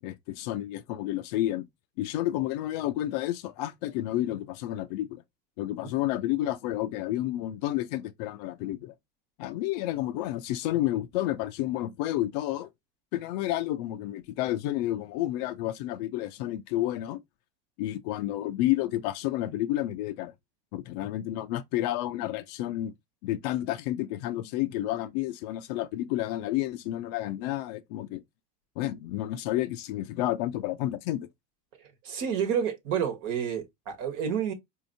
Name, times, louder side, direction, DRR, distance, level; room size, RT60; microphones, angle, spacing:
voice 1, 0.0-1.6 2.0-5.2 5.6-8.9 9.4-12.7 13.1-17.2 17.8-20.3 20.7-22.9 23.2-28.2 28.8-31.3, left 14 dB, 70° left, 0.4 m, -30 dB
voice 2, 32.0-34.5, right 8 dB, 65° right, 1.2 m, -29 dB
4.1 x 2.7 x 2.7 m
supercardioid pair, 110°, 21 cm